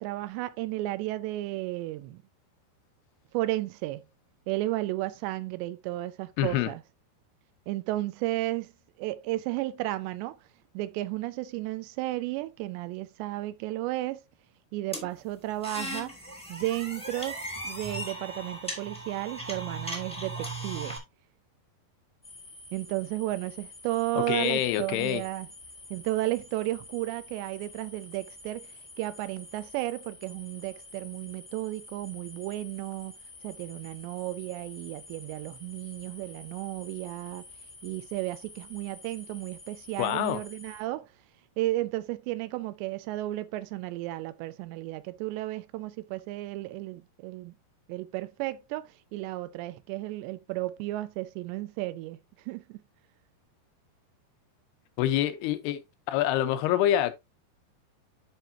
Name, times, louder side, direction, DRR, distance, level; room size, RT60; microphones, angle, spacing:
voice 1, 0.0-2.2 3.3-4.0 4.5-6.8 7.7-8.7 9.0-10.4 10.7-14.2 14.7-16.2 16.5-17.4 17.6-21.0 22.7-25.5 25.9-28.7 29.0-33.1 33.4-37.4 37.8-41.1 41.6-47.5 47.9-52.2 52.5-52.8, right 17 dB, 85° right, 2.8 m, -33 dB
voice 2, 6.4-6.7 24.2-25.2 40.0-40.4 55.0-55.8 56.1-57.1, left 12 dB, 75° left, 2.7 m, -26 dB
sound 1, 14.9-21.0, right 1 dB, 5° left, 0.8 m, -37 dB
sound 2, 22.2-40.8, left 2 dB, 35° left, 1.1 m, -49 dB
12.0 x 4.7 x 2.7 m
omnidirectional pair, 5.0 m